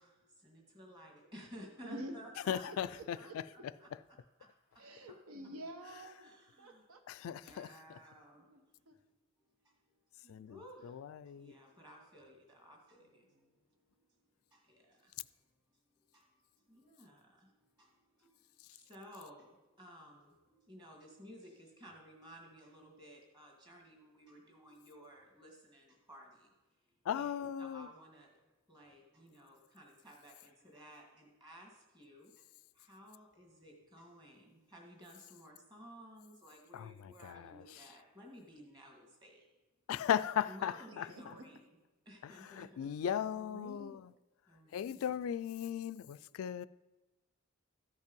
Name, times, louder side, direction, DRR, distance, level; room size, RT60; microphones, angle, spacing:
voice 1, 0.0-4.5 4.7-5.2 6.2-6.8 7.4-8.9 9.4-10.0 10.4-14.0 14.5-15.5 16.0-27.3 27.6-28.4 28.7-39.5 40.4-41.7 42.0-42.9 44.5-45.0 46.2-46.5, equal, 20° right, 1.8 m, -56 dB
voice 2, 1.8-2.2 2.7-3.4 4.8-6.3 6.6-7.0 8.5-8.6 8.9-9.0 10.2-10.3 40.9-41.5 43.0-44.0, right 1 dB, 90° right, 1.1 m, -49 dB
voice 3, 2.5-3.2 7.1-7.7 10.3-10.6 10.8-11.5 27.1-27.9 36.7-37.6 39.9-41.0 42.2-44.1 44.7-46.7, left 9 dB, 85° left, 0.3 m, -37 dB
13.5 x 5.4 x 5.3 m
head